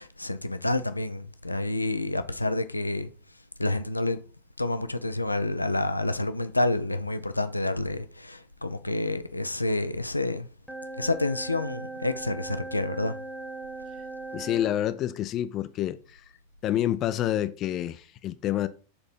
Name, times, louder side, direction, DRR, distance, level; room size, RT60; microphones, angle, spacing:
voice 1, 0.0-3.1 3.6-4.2 4.6-10.5 11.0-13.2, left 2 dB, 85° left, 0.6 m, -28 dB
sound 1, 10.7-14.8, right 2 dB, ahead, 1.3 m, -39 dB
voice 2, 14.3-16.2 16.6-18.7, left 12 dB, 35° left, 0.6 m, -28 dB
7.0 x 3.9 x 5.3 m
figure-of-eight pair, 90°, 0 cm